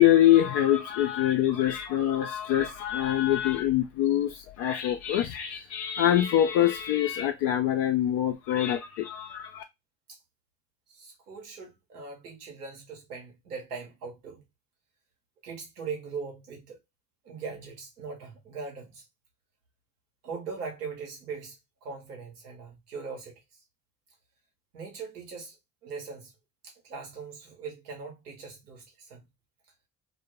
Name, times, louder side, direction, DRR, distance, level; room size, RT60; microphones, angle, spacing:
voice 1, 0.0-9.6, left 12 dB, 65° left, 0.5 m, -24 dB
voice 2, 10.9-14.4 15.4-16.8 17.2-19.0 20.2-23.4 24.7-25.5 25.8-26.3 26.6-29.2, right 5 dB, 90° right, 0.8 m, -40 dB
2.2 x 2.1 x 3.0 m
hypercardioid pair, 45°, 45 cm